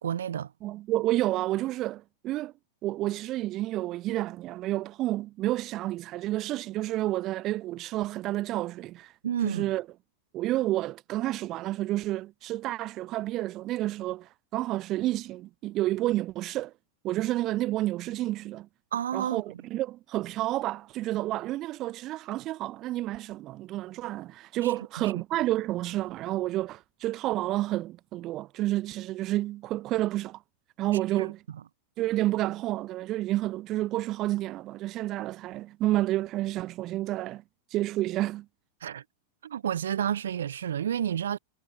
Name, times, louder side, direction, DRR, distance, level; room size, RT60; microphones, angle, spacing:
voice 1, 0.0-0.5 9.2-9.7 18.9-19.4 24.6-24.7 25.0-25.1 31.2-31.3 38.8-39.0 39.4-41.4, right 9 dB, 65° right, 5.2 m, -30 dB
voice 2, 0.6-2.5 2.8-9.1 9.4-9.8 10.3-16.7 17.0-18.7 19.1-30.4 30.8-31.4 32.0-37.4 37.7-38.5, right 16 dB, 35° right, 4.4 m, -30 dB
figure-of-eight pair, 90°, 0 cm